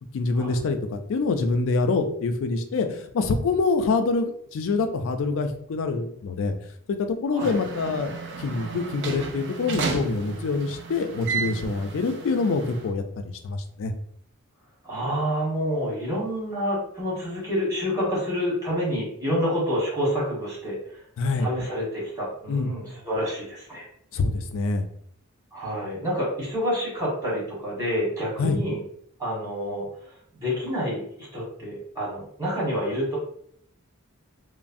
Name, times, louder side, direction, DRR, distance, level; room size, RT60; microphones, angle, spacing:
voice 1, 0.1-6.5 6.9-8.1 8.4-13.0 13.4-13.9 21.2-21.5 22.5-22.7 24.1-24.8 28.4-28.6, left 3 dB, 60° left, 7 dB, 0.4 m, -25 dB
sound 1, 7.4-12.9, right 5 dB, 55° right, 0.4 m, -33 dB
voice 2, 14.8-21.0 21.4-23.9 25.5-28.8 29.2-33.2, equal, 15° right, -6 dB, 1.3 m, -28 dB
3.1 x 2.0 x 2.5 m, 0.66 s
head